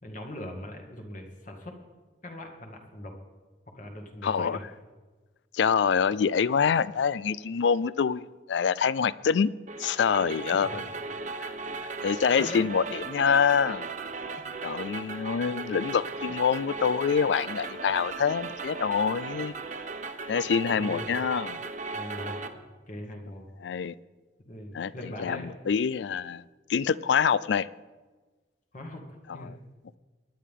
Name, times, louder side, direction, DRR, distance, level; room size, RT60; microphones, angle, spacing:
voice 1, 0.0-1.7 2.2-3.1 3.7-4.6 10.5-10.8 12.4-12.7 14.3-14.4 15.5-15.7 20.8-21.1 21.9-23.5 24.4-25.5 28.7-29.6, left 1 dB, 45° left, 2.1 m, -41 dB
voice 2, 4.2-4.6 5.5-9.5 9.8-10.8 11.4-11.5 12.0-13.9 14.6-19.5 20.3-21.7 23.6-23.9 24.7-24.9 25.2-26.4 26.7-27.7 29.4-29.5, left 6 dB, 80° left, 0.4 m, -26 dB
sound 1, 9.7-22.5, right 3 dB, 45° right, 0.9 m, -37 dB
23.5 x 10.0 x 3.7 m
head